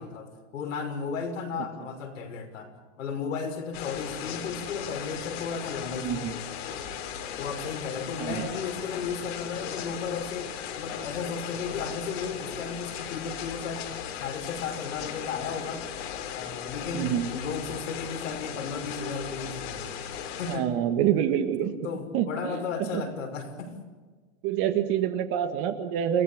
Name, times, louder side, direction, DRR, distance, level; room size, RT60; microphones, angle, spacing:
voice 1, 0.0-6.9 7.4-13.8 14.2-15.8 16.3-19.9 20.4-20.7 21.6-23.7, left 5 dB, 80° left, 4 dB, 6.0 m, -35 dB
sound 1, 3.7-20.6, left 8 dB, 55° left, 3.4 m, -37 dB
voice 2, 6.0-6.3 8.2-8.5 16.9-17.3 20.5-21.7 22.1-22.6 22.9-23.0 24.4-26.2, right 10 dB, 35° right, 8 dB, 1.8 m, -26 dB
29.0 x 16.0 x 8.7 m, 1.4 s
supercardioid pair, 155°, 38 cm